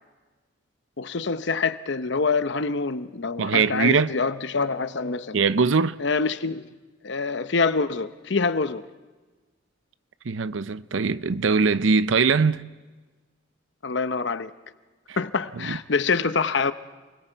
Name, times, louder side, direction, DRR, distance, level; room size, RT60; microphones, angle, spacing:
voice 1, 1.0-5.4 6.0-6.7 7.0-8.8 13.8-14.5 15.2-16.7, left 4 dB, 65° left, 0.8 m, -25 dB
voice 2, 3.4-4.1 5.3-6.0 10.3-12.6 15.1-15.2 15.6-15.8, right 5 dB, 75° right, 0.6 m, -21 dB
28.0 x 21.5 x 4.6 m
head